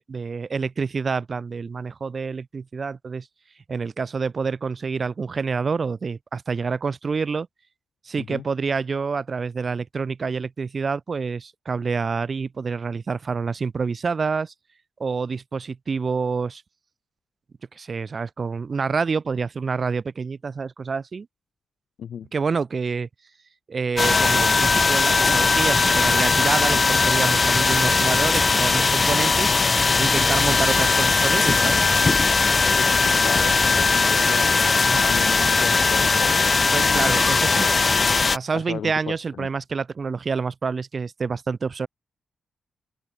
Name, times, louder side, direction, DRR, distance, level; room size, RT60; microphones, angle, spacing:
voice 1, 0.0-3.3 3.7-7.5 8.0-14.5 15.0-16.6 17.7-21.3 22.3-23.1 23.7-29.6 30.0-31.9 34.8-35.1 36.7-37.7 38.3-41.9, right 5 dB, 40° right, 0.9 m, -27 dB
sound 1, 24.0-38.4, left 4 dB, 30° left, 0.4 m, -19 dB
voice 2, 32.7-34.6 35.0-37.7 38.5-39.5, left 8 dB, 70° left, 1.4 m, -34 dB
wide cardioid pair, 125°, 0 cm